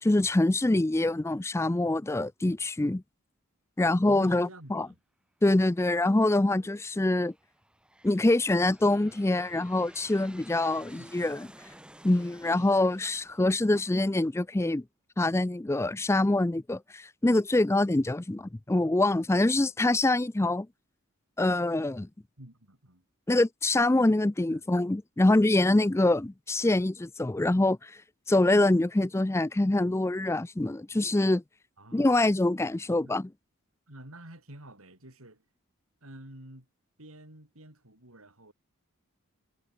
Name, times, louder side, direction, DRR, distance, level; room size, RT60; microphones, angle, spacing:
voice 1, 0.0-3.0 3.8-4.9 5.4-7.3 8.0-11.5 12.0-14.8 15.2-20.7 21.4-22.1 23.3-28.0 28.3-31.4 31.9-33.3, left 2 dB, 10° left, 0.4 m, -25 dB
voice 2, 4.1-5.0 6.6-6.7 10.9-11.4 12.6-12.8 22.4-23.0 24.5-24.8 31.8-32.1 32.6-33.2 33.9-35.4 36.0-36.7 37.0-38.5, right 1 dB, 75° right, 5.9 m, -49 dB
Aircraft, 5.6-6.1 6.9-14.4, right 1 dB, 5° right, 2.6 m, -54 dB
head